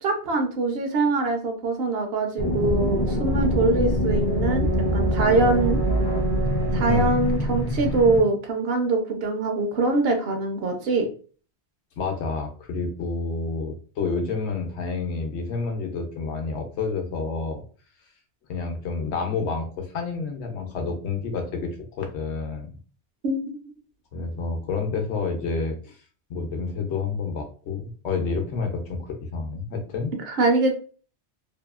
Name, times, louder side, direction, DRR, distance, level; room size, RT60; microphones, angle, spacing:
voice 1, 0.0-5.8 6.7-11.1 23.2-23.6 30.3-30.7, right 3 dB, 65° right, 4 dB, 0.8 m, -23 dB
sound 1, 2.4-8.2, equal, 30° left, 0.5 m, -24 dB
voice 2, 6.8-7.2 12.0-17.6 18.5-22.7 24.1-26.0 26.3-30.1, left 4 dB, 75° left, 3 dB, 0.9 m, -29 dB
2.7 x 2.3 x 2.3 m, 0.40 s
omnidirectional pair, 1.1 m